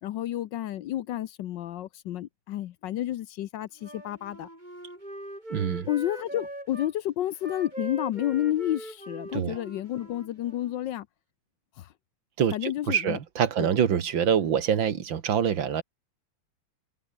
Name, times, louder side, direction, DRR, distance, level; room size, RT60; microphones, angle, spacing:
voice 1, 0.0-4.5 5.9-11.1 11.8-11.9 12.5-13.2 13.6-13.7, left 12 dB, 70° left, 1.3 m, -30 dB
Wind instrument woodwind instrument, 3.8-6.9 7.3-10.8, right 1 dB, 20° right, 8.2 m, -41 dB
voice 2, 5.5-5.9 9.3-9.6 12.4-15.8, right 8 dB, 70° right, 2.2 m, -25 dB
omnidirectional pair, 2.2 m